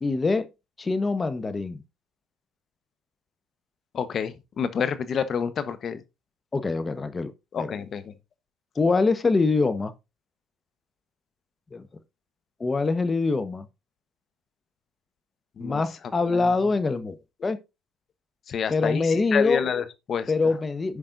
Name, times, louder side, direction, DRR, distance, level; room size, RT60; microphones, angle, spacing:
voice 1, 0.0-0.5 0.8-1.8 6.5-7.3 7.6-7.7 8.8-9.9 11.7-11.9 12.6-13.7 15.6-17.2 17.4-17.6 18.7-19.6 20.3-21.0, left 3 dB, 25° left, 1.1 m, -24 dB
voice 2, 3.9-6.0 7.5-8.1 15.6-15.8 16.2-16.5 18.5-20.3, left 7 dB, 50° left, 1.0 m, -28 dB
16.0 x 5.3 x 2.6 m
supercardioid pair, 80°, 0 cm